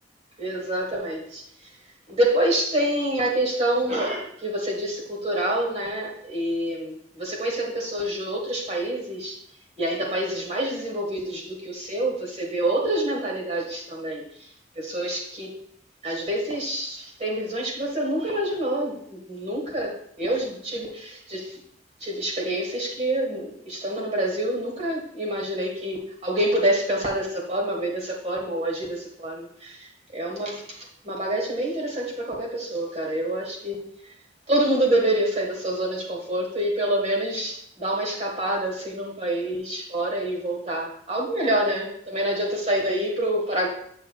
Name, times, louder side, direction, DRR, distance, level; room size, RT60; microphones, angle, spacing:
voice 1, 0.4-1.4 2.1-9.3 9.8-14.3 14.7-15.5 16.0-21.6 22.0-30.8 31.0-33.8 34.5-43.7, right 1 dB, 35° right, -1 dB, 1.7 m, -27 dB
8.7 x 6.4 x 2.4 m, 0.67 s
head